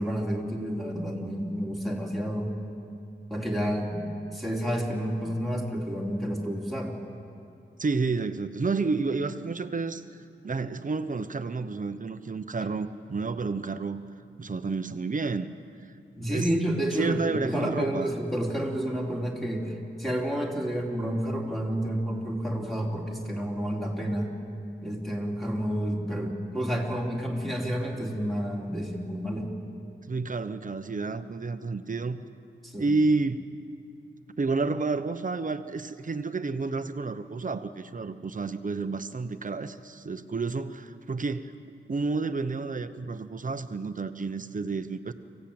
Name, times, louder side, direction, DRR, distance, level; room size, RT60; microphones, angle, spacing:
voice 1, 0.0-2.5 3.3-7.0 16.2-24.3 24.8-29.5 32.6-32.9, equal, ahead, -1 dB, 3.3 m, -30 dB
voice 2, 7.8-14.0 14.4-15.5 15.8-15.9 16.3-16.5 16.9-18.1 30.1-32.2 32.8-33.5 34.4-41.6 41.9-45.1, right 4 dB, 40° right, 10 dB, 0.9 m, -30 dB
25.5 x 16.0 x 8.8 m, 2.5 s
wide cardioid pair, 125°, 20 cm